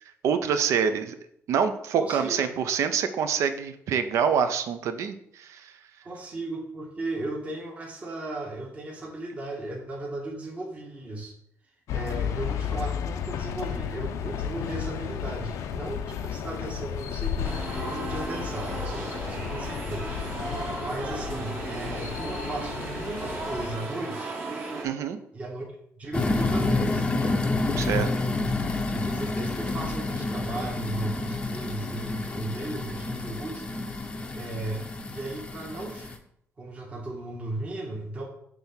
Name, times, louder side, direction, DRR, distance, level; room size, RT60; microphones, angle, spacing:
voice 1, 0.2-1.2 1.5-5.7 24.8-25.2 27.8-28.1, right 7 dB, 75° right, 9 dB, 0.6 m, -26 dB
voice 2, 2.0-2.5 6.0-11.3 11.9-24.4 25.3-25.6 26.0-27.4 27.9-33.6 34.3-36.1 36.6-38.3, right 2 dB, 25° right, -1 dB, 1.1 m, -36 dB
sound 1, 11.9-23.8, left 8 dB, 90° left, 0.5 m, -33 dB
sound 2, 17.4-24.8, right 2 dB, 40° right, 1.5 m, -35 dB
sound 3, 26.1-36.2, left 2 dB, 20° left, 0.6 m, -29 dB
6.1 x 3.4 x 5.6 m, 0.71 s
cardioid pair, 165°, 5 cm